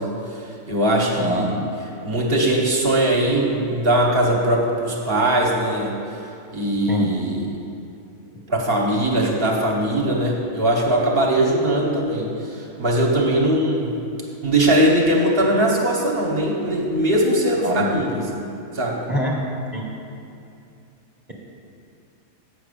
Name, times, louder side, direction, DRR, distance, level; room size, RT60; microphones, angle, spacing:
voice 1, 0.0-1.5 2.0-5.9 6.5-7.4 8.5-13.9 14.4-18.4 18.7-19.0, right 1 dB, 45° right, -1 dB, 1.3 m, -20 dB
voice 2, 1.2-1.7 6.9-7.1 17.6-18.0 19.1-19.4 19.7-19.9, left 1 dB, 10° right, -3 dB, 1.0 m, -24 dB
8.1 x 6.0 x 6.8 m, 2.6 s
omnidirectional pair, 1.4 m